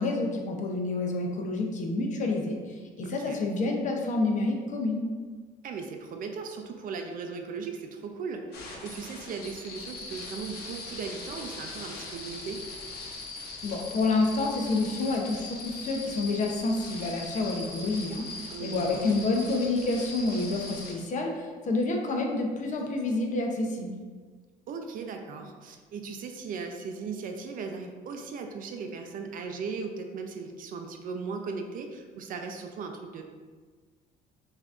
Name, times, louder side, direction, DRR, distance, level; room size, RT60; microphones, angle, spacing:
voice 1, 0.0-5.0 13.6-23.9, left 2 dB, 45° left, 1 dB, 0.7 m, -28 dB
voice 2, 3.0-3.4 5.6-12.6 18.5-19.2 24.7-33.2, right 5 dB, 55° right, 4 dB, 0.5 m, -38 dB
sound 1, 8.5-20.9, left 3 dB, 75° left, 0.8 m, -41 dB
5.6 x 2.6 x 2.4 m, 1.5 s
cardioid pair, 110°, 17 cm